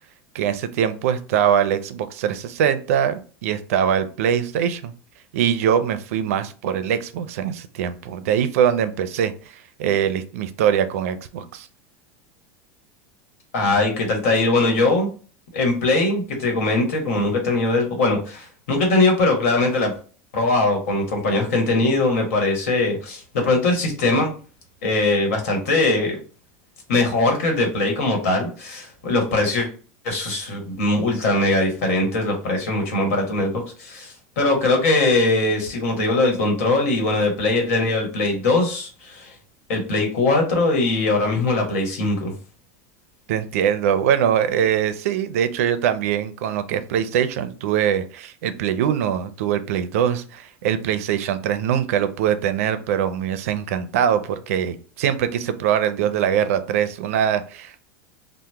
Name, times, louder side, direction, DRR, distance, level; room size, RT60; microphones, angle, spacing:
voice 1, 0.3-4.9 5.3-9.3 9.8-11.7 43.3-57.8, right 9 dB, 80° right, 10 dB, 0.4 m, -22 dB
voice 2, 13.5-15.1 15.5-19.9 20.3-24.3 24.8-26.2 26.9-29.7 30.0-39.3 39.7-42.3, left 2 dB, 85° left, 2 dB, 1.2 m, -21 dB
2.9 x 2.1 x 3.3 m, 0.39 s
supercardioid pair, 175°, 8 cm